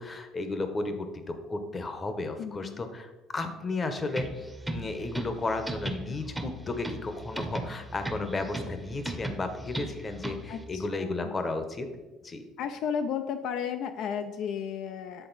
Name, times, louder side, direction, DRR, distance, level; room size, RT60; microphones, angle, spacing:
voice 1, 0.0-11.9 12.2-12.4, left 3 dB, 25° left, 8 dB, 0.8 m, -33 dB
voice 2, 2.4-2.9 10.5-11.3 12.6-15.3, left 7 dB, 70° left, 7 dB, 0.3 m, -34 dB
sound 1, 4.1-10.6, right 1 dB, 10° right, 0.7 m, -38 dB
7.9 x 3.7 x 4.0 m, 1.1 s
cardioid pair, 110°, 0 cm